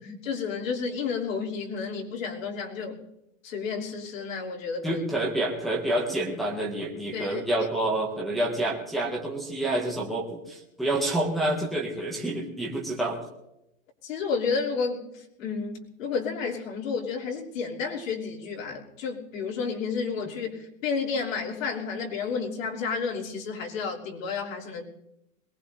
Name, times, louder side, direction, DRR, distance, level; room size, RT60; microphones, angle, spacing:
voice 1, 0.2-3.0 3.4-5.0 7.1-7.4 14.0-15.1 15.4-24.8, left 5 dB, 80° left, -2 dB, 3.1 m, -31 dB
voice 2, 4.8-13.2, right 1 dB, ahead, -4 dB, 0.4 m, -28 dB
21.5 x 19.0 x 2.7 m, 0.86 s
supercardioid pair, 175°, 39 cm